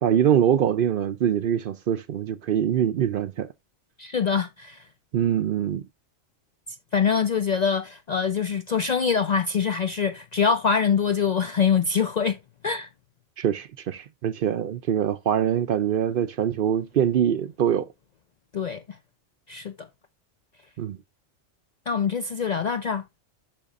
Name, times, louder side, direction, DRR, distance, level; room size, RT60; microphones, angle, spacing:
voice 1, 0.0-3.5 5.1-5.9 13.4-17.9 20.8-21.0, right 9 dB, 60° right, 0.6 m, -23 dB
voice 2, 4.0-4.9 6.9-12.4 12.6-12.9 18.5-18.8 19.5-19.9 21.9-23.0, left 6 dB, 60° left, 0.4 m, -24 dB
8.7 x 6.1 x 2.4 m
omnidirectional pair, 1.2 m